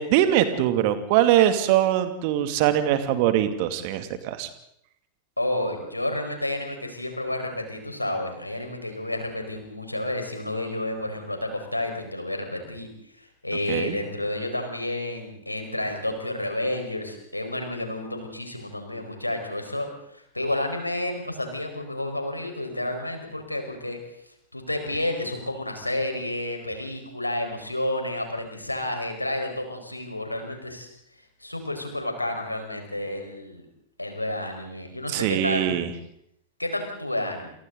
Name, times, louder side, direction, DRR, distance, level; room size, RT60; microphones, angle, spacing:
voice 1, 0.0-4.5 13.7-14.0 35.1-35.9, right 12 dB, 45° right, 9 dB, 2.5 m, -22 dB
voice 2, 5.4-12.9 13.2-24.0 24.5-30.9 31.4-33.6 34.0-35.9 36.6-37.5, left 1 dB, 85° left, 4 dB, 4.9 m, -30 dB
29.0 x 28.0 x 4.0 m, 0.72 s
figure-of-eight pair, 90°, 0 cm